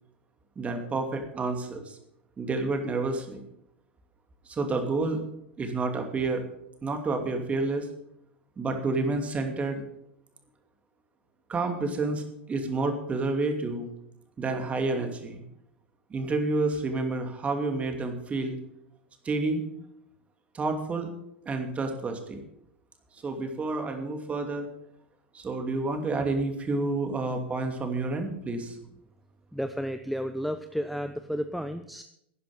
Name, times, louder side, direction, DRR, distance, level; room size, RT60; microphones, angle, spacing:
voice 1, 0.6-2.0 2.4-3.4 4.5-5.2 5.6-6.4 6.8-7.9 8.6-9.8 11.5-12.2 12.5-13.9 14.4-15.4 16.1-18.6 19.2-19.6 20.5-21.1 21.5-22.4 23.2-24.7 25.3-28.8, right 3 dB, 20° right, 5 dB, 2.6 m, -29 dB
voice 2, 29.5-32.0, equal, ahead, 9 dB, 0.7 m, -32 dB
11.5 x 10.5 x 7.4 m, 0.77 s
figure-of-eight pair, 90°, 6 cm